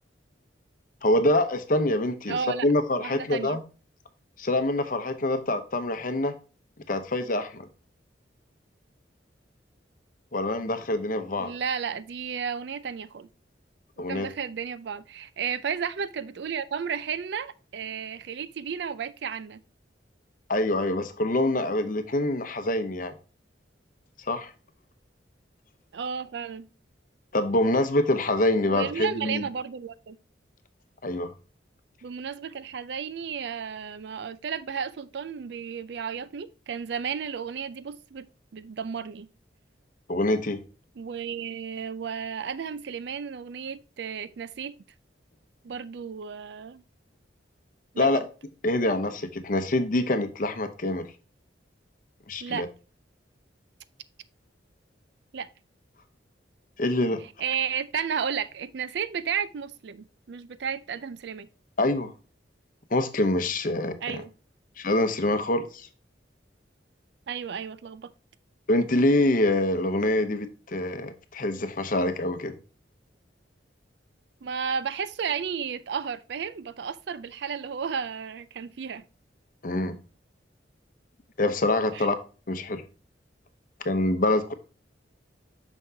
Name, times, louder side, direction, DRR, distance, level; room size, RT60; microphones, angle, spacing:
voice 1, 1.0-2.4 2.6-3.6 4.4-6.3 6.9-7.7 10.3-11.5 14.0-14.3 20.5-23.1 24.3-24.5 27.3-29.4 31.0-31.3 40.1-40.6 48.0-48.2 48.6-51.1 52.3-52.7 56.8-57.2 61.8-62.1 62.9-64.2 64.8-65.9 68.7-72.5 79.6-80.0 81.4-82.2 82.5-82.8 83.8-84.5, left 1 dB, 45° left, 0.8 m, -25 dB
voice 2, 2.3-2.7 3.0-3.6 11.4-13.3 14.0-19.6 25.9-26.7 28.6-30.2 32.0-38.3 38.5-39.3 41.0-44.7 45.6-46.8 47.9-48.2 52.4-52.7 55.3-55.5 57.4-61.5 64.0-64.3 67.3-68.1 74.4-79.1 81.9-82.1, right 7 dB, 60° right, 0.4 m, -33 dB
6.1 x 5.7 x 2.7 m
head